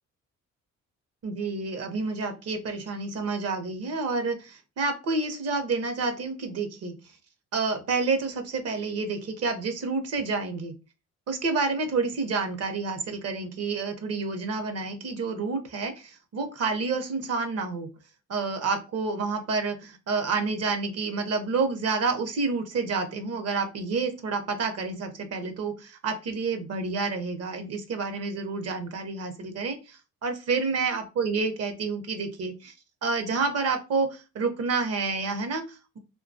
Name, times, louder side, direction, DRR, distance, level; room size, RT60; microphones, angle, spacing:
voice 1, 1.2-6.9 7.5-10.7 11.3-17.9 18.3-32.7 33.0-36.0, right 4 dB, 55° right, 7 dB, 0.7 m, -29 dB
2.9 x 2.2 x 2.5 m, 0.30 s
cardioid pair, 90°, 30 cm